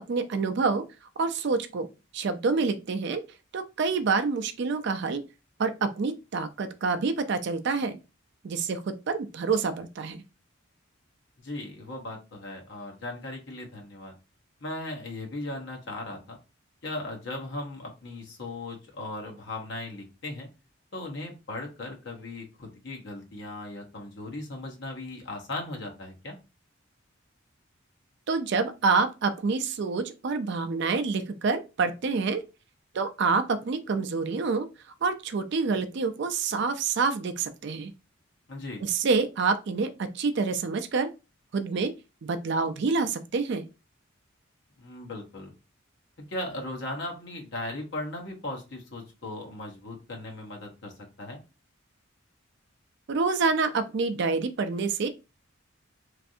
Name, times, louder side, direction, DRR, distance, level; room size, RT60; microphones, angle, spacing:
voice 1, 0.1-0.8 1.2-1.9 2.1-3.2 3.5-5.2 5.6-8.0 8.4-10.2 28.3-32.4 32.9-34.7 35.0-37.9 38.8-41.1 41.5-41.9 42.2-43.7 53.1-55.1, right 4 dB, 55° right, 0.4 m, -27 dB
voice 2, 11.4-14.1 14.6-16.4 16.8-20.5 20.9-26.4 38.5-38.8 44.8-45.5 46.2-50.9 51.2-51.4, left 2 dB, 60° left, 1.0 m, -37 dB
3.2 x 2.5 x 2.6 m
head